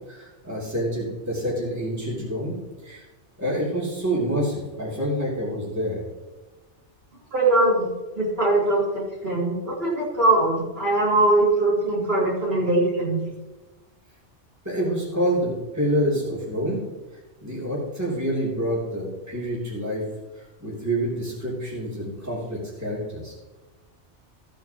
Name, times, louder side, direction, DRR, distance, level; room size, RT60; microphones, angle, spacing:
voice 1, 0.1-2.6 2.8-3.0 3.4-6.0 14.6-16.8 17.4-20.0 20.3-23.3, equal, 15° right, -6 dB, 3.2 m, -27 dB
voice 2, 7.3-7.9 8.2-13.2, right 2 dB, 55° right, -7 dB, 3.9 m, -21 dB
15.5 x 8.8 x 3.0 m, 1.2 s
omnidirectional pair, 1.2 m